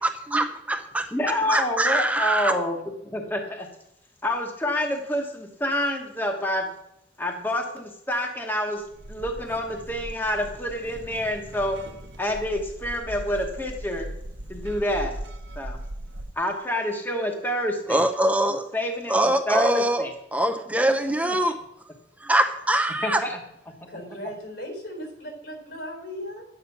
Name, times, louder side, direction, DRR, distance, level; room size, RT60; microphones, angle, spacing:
voice 1, 0.0-1.1 1.5-2.5 17.9-18.7 19.1-20.0 20.3-21.6 22.2-23.2, right 1 dB, 10° right, 6 dB, 0.6 m, -23 dB
voice 2, 1.1-2.7 3.0-3.7 4.2-6.7 7.2-11.8 12.2-14.1 14.5-15.1 15.6-15.8 16.4-18.0 18.7-19.1 19.5-20.1 21.2-21.3 23.0-23.4 23.8-23.9, left 1 dB, 10° left, 3 dB, 1.1 m, -28 dB
sound 1, 8.8-16.3, right 1 dB, 90° right, 0.9 m, -39 dB
voice 3, 23.9-26.5, equal, 75° left, 3 dB, 4.1 m, -37 dB
10.5 x 8.8 x 5.9 m, 0.81 s
head